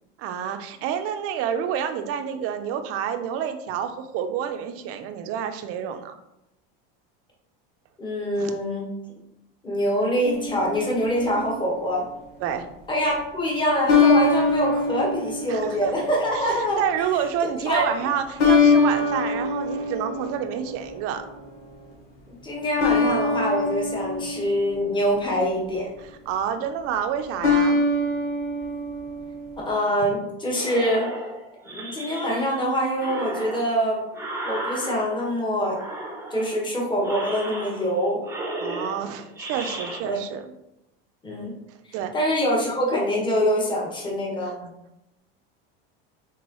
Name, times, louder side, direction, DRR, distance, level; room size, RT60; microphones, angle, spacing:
voice 1, 0.2-6.2 8.4-8.5 12.4-12.6 15.5-15.9 16.3-21.2 26.3-27.8 38.6-40.5 41.9-42.1 44.4-44.7, right 8 dB, 50° right, 8 dB, 0.6 m, -28 dB
voice 2, 8.0-8.9 9.6-12.1 12.9-16.8 17.6-17.9 22.4-25.9 29.6-31.1 31.6-34.0 34.4-35.8 36.3-38.2 40.0-40.2 41.2-41.5 41.8-44.5, equal, 15° left, -3 dB, 1.4 m, -24 dB
sound 1, 10.2-11.6 13.9-16.3 18.4-21.0 22.8-25.3 27.4-29.7, left 3 dB, 80° left, 1.5 m, -23 dB
sound 2, 30.5-32.6 32.9-35.3 35.7-36.6 37.0-38.0 38.2-40.0, right 1 dB, 10° right, 0.8 m, -34 dB
4.6 x 3.6 x 3.1 m, 0.88 s
supercardioid pair, 120°, 29 cm